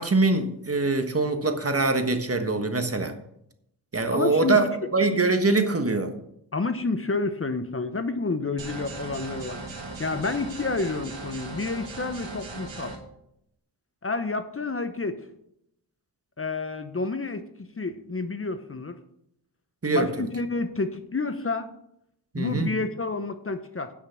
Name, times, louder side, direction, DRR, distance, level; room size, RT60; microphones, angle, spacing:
voice 1, 0.0-3.1 3.9-6.1 19.8-20.3 22.3-22.7, right 3 dB, 35° right, 7 dB, 1.4 m, -23 dB
voice 2, 4.1-4.6 6.5-9.6 10.0-12.9 14.0-15.2 16.4-19.0 19.9-21.7 22.3-23.9, left 3 dB, 30° left, 9 dB, 0.9 m, -29 dB
sound 1, 8.6-13.0, right 3 dB, 80° right, 2.0 m, -38 dB
9.9 x 6.2 x 5.8 m, 0.76 s
cardioid pair, 55°, 43 cm